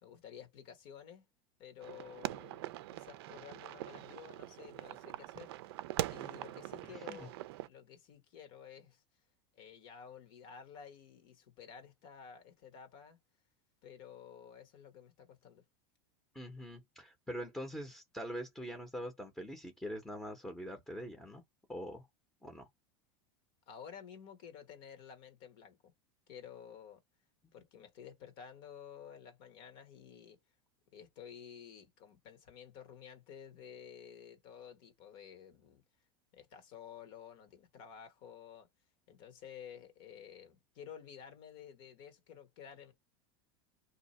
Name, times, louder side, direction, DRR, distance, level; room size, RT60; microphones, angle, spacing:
voice 1, 0.0-1.2 1.6-5.8 6.1-7.4 7.6-9.0 9.5-13.2 13.8-15.6 23.7-25.9 26.3-27.0 27.5-30.4 30.9-35.8 36.3-38.7 39.1-42.9, left 8 dB, 60° left, 1.2 m, -52 dB
sound 1, 1.8-7.7, right 16 dB, 75° right, 0.4 m, -42 dB
voice 2, 6.9-7.3 16.3-21.4 21.7-22.0 22.4-22.7, equal, 5° left, 0.7 m, -43 dB
2.8 x 2.3 x 4.1 m
supercardioid pair, 130°, 13 cm